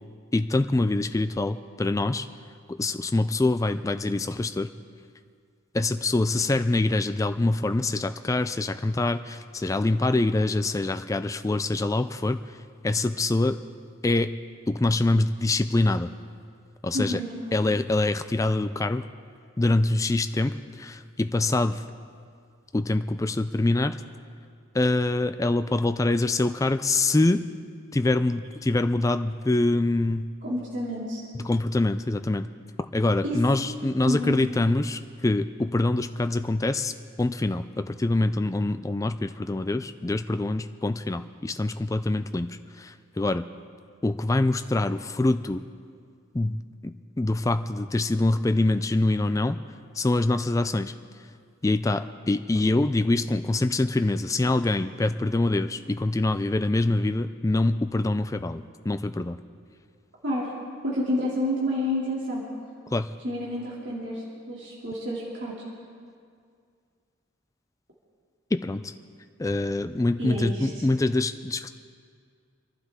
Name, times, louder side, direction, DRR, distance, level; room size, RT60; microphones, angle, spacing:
voice 1, 0.3-2.3 2.7-4.7 5.7-12.4 12.8-13.6 14.0-14.3 14.7-16.1 16.8-17.2 17.5-19.1 19.6-21.8 22.7-24.0 24.7-27.4 27.9-30.3 31.4-32.5 32.9-36.9 37.2-43.5 44.0-45.6 46.3-46.6 46.8-46.9 47.2-49.6 50.0-50.9 51.6-59.4 62.9-63.1 68.5-68.8 69.4-71.7, left 2 dB, 15° left, 9 dB, 0.3 m, -25 dB
voice 2, 16.9-17.4 30.4-31.2 33.2-33.4 34.1-34.3 60.2-60.5 60.8-62.4 63.2-65.5 70.2-70.7, left 1 dB, 60° right, -6 dB, 2.9 m, -29 dB
27.0 x 11.5 x 3.7 m, 2.2 s
head